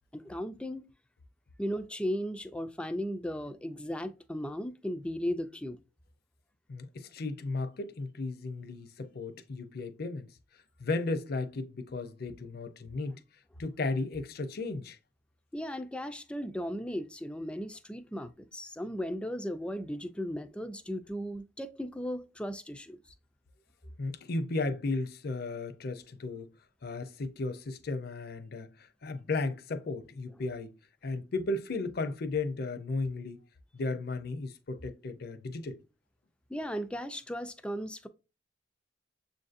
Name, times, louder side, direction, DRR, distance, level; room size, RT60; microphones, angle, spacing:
voice 1, 0.1-0.9 1.6-5.8 15.5-23.0 36.5-38.1, equal, 5° left, 0.3 m, -36 dB
voice 2, 6.7-10.3 10.8-13.2 13.6-15.0 24.0-26.5 26.8-30.7 31.0-33.4 33.7-35.8, left 3 dB, 55° left, 0.5 m, -35 dB
7.0 x 2.6 x 2.4 m
head